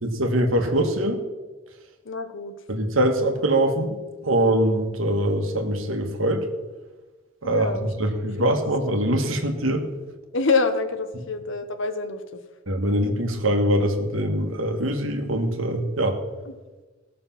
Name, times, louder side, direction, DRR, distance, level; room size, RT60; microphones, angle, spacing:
voice 1, 0.0-1.2 2.7-4.0 4.2-6.4 7.4-9.9 12.7-16.2, right 1 dB, 75° right, 5 dB, 1.7 m, -23 dB
voice 2, 2.0-2.5 7.4-7.9 8.1-8.5 10.3-12.2 16.4-16.5, left 4 dB, 65° left, 9 dB, 1.1 m, -26 dB
17.5 x 6.7 x 5.9 m, 1.2 s
head